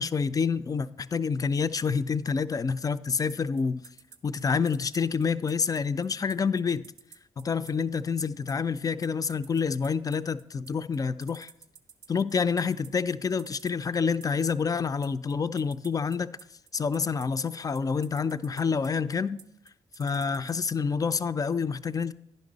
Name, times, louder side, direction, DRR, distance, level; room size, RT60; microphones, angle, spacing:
voice 1, 0.0-3.8 4.2-6.8 7.4-11.5 12.1-16.3 16.7-19.4 20.0-22.1, left 5 dB, 30° left, 0.3 m, -28 dB
sound 1, 3.3-20.7, right 7 dB, 80° right, 0.5 m, -51 dB
10.0 x 5.3 x 3.9 m
cardioid pair, 65°, 12 cm